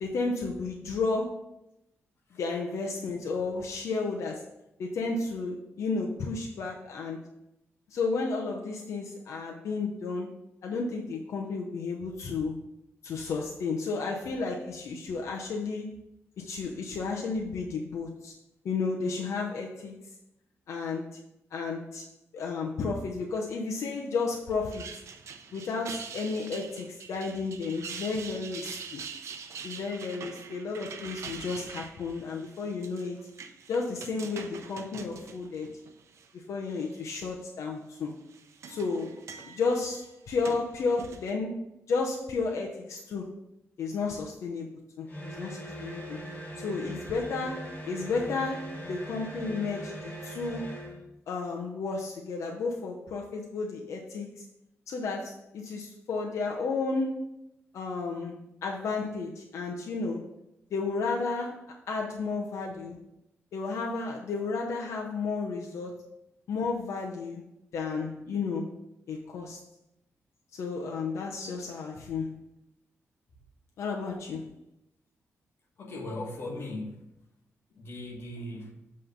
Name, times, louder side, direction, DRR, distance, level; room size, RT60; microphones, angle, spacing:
voice 1, 0.0-1.5 2.4-4.5 4.8-7.3 7.9-10.3 10.6-12.7 13.0-15.9 16.4-18.3 18.6-20.0 20.7-21.2 21.5-22.1 22.3-24.8 25.5-29.0 29.6-33.2 33.7-35.7 36.3-38.1 38.7-39.2 39.4-43.3 43.8-46.2 46.6-50.7 51.3-54.5 54.9-57.3 57.7-60.3 60.7-63.0 63.5-66.0 66.5-67.4 67.7-68.8 69.1-69.6 70.5-72.4 73.8-74.5, left 4 dB, 90° left, 0 dB, 0.7 m, -32 dB
sound 1, 24.5-36.3 36.7-37.3 38.1-41.3, right 6 dB, 80° right, 0.6 m, -44 dB
sound 2, 45.1-51.0, right 1 dB, 35° left, 1.7 m, -40 dB
voice 2, 75.8-77.0 77.7-78.7, left 1 dB, 60° left, 0 dB, 1.3 m, -38 dB
7.8 x 3.2 x 5.3 m, 0.87 s
wide cardioid pair, 145°, 5 cm